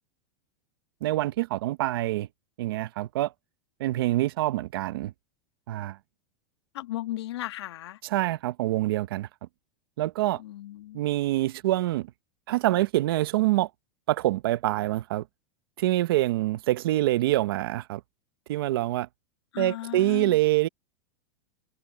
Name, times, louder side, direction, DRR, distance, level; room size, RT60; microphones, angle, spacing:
voice 1, 1.0-2.3 2.6-3.3 3.8-5.1 5.7-6.0 8.0-9.3 10.0-10.4 10.9-12.1 12.5-13.7 14.1-15.3 15.8-18.0 18.5-19.1 19.6-20.7, right 16 dB, 55° right, 0.8 m, -25 dB
voice 2, 6.7-8.0 10.4-11.0 19.5-20.4, left 15 dB, 70° left, 1.8 m, -35 dB
supercardioid pair, 180°, 14 cm